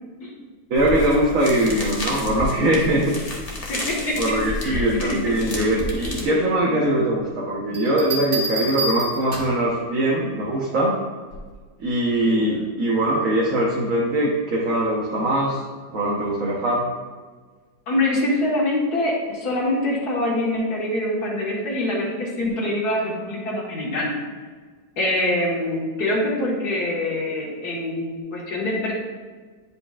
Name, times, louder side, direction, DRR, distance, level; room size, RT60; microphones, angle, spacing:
voice 1, 0.7-3.1 4.2-10.9 11.8-15.6 15.9-16.9, right 1 dB, 60° right, -5 dB, 1.4 m, -21 dB
sound 1, 0.8-6.3, left 1 dB, 25° left, 1.1 m, -31 dB
voice 2, 3.7-4.3 4.6-5.4 6.2-6.8 12.2-12.6 17.9-24.1 25.0-28.9, left 1 dB, 75° left, -3 dB, 2.1 m, -25 dB
sound 2, 7.7-9.7 11.3-11.6, right 1 dB, 35° right, 1.5 m, -29 dB
9.8 x 5.1 x 2.4 m, 1.5 s
omnidirectional pair, 1.7 m